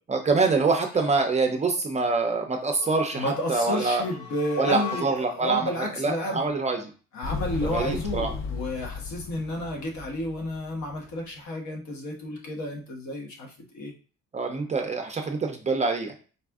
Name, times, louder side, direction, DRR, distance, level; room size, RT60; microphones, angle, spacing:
voice 1, 0.1-4.0 4.6-6.9 7.6-8.3 14.3-16.2, right 4 dB, 25° right, 4 dB, 0.4 m, -25 dB
sound 1, 2.7-5.5, left 7 dB, 20° left, 1.3 m, -40 dB
voice 2, 3.1-6.5 7.1-13.9, left 1 dB, 70° left, 1 dB, 1.1 m, -31 dB
Motorcycle, 7.2-11.1, left 4 dB, 45° left, 0.5 m, -35 dB
4.1 x 2.4 x 3.5 m, 0.37 s
cardioid pair, 175°, 30 cm